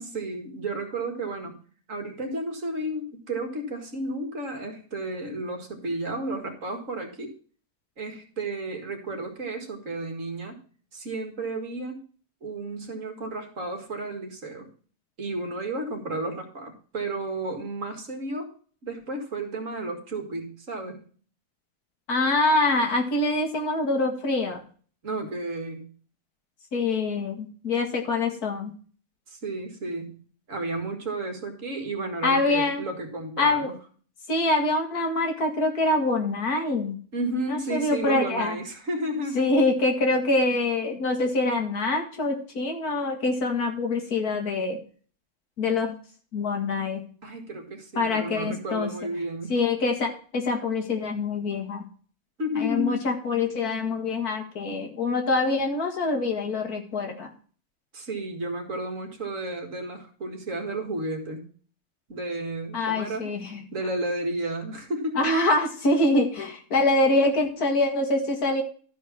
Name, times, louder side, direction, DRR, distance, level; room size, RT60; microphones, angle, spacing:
voice 1, 0.0-1.6 1.9-7.3 8.0-10.6 10.9-12.0 12.4-14.7 15.2-18.5 18.8-21.0 25.0-25.9 29.3-30.2 30.5-33.7 37.1-39.5 47.2-49.6 52.4-53.0 57.9-61.5 62.1-63.3 63.7-65.2, right 2 dB, 60° right, 3 dB, 2.3 m, -32 dB
voice 2, 22.1-24.6 26.7-28.7 32.2-32.8 33.4-33.7 34.3-37.0 37.5-38.6 39.4-44.8 45.6-46.0 46.3-47.1 48.0-48.9 49.5-51.9 52.6-57.3 62.7-63.6 65.2-68.6, left 2 dB, 85° left, 3 dB, 2.3 m, -25 dB
12.5 x 5.0 x 6.0 m, 0.43 s
omnidirectional pair, 1.6 m